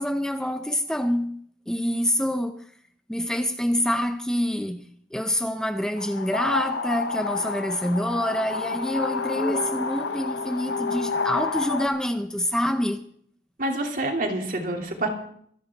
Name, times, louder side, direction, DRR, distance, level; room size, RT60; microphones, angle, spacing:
voice 1, 0.0-1.4 1.7-2.6 3.1-4.8 5.1-13.0, equal, 5° left, 0.6 m, -26 dB
sound 1, 6.0-11.9, left 4 dB, 85° left, 0.8 m, -30 dB
sound 2, 8.2-11.5, left 3 dB, 30° left, 0.9 m, -35 dB
voice 2, 13.6-15.1, right 1 dB, 50° right, 2.7 m, -27 dB
25.0 x 10.5 x 3.6 m
head